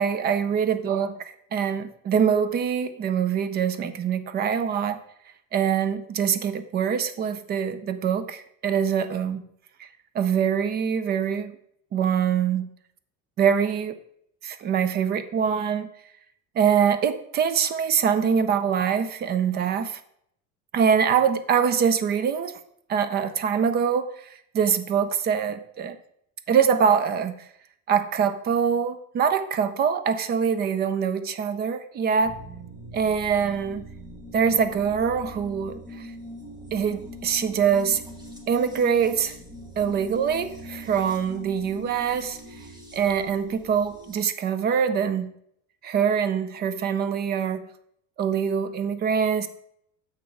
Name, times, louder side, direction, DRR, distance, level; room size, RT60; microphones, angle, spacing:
voice 1, 0.0-5.0 5.5-9.4 9.8-9.9 10.1-11.5 11.9-12.7 13.4-14.0 14.4-15.9 16.6-20.0 20.7-22.6 22.9-26.0 26.5-27.3 27.9-32.4 32.9-33.8 34.3-36.1 36.7-38.0 38.5-39.3 39.8-42.4 42.9-45.3 45.8-47.7 48.2-49.5, right 7 dB, 30° right, 12 dB, 0.5 m, -24 dB
sound 1, 32.2-44.2, equal, 10° right, 1.2 m, -42 dB
7.3 x 6.2 x 4.6 m, 0.70 s
cardioid pair, 165°, 33 cm